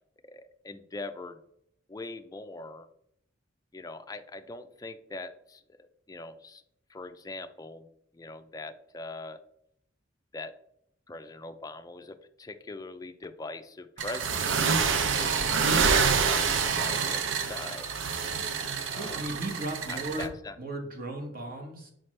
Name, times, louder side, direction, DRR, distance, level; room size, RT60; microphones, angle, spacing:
voice 1, 0.2-1.4 1.9-2.9 3.7-5.6 6.1-6.6 6.9-7.9 8.1-9.4 10.3-10.5 11.1-16.5 16.8-17.9 18.9-19.2 19.9-20.6, left 3 dB, 20° left, 8 dB, 0.4 m, -42 dB
sound 1, 14.0-20.3, right 5 dB, 75° right, 0.6 m, -27 dB
voice 2, 18.9-20.3 20.6-21.9, right 1 dB, 45° right, 2 dB, 1.2 m, -36 dB
5.7 x 5.1 x 3.2 m, 0.72 s
head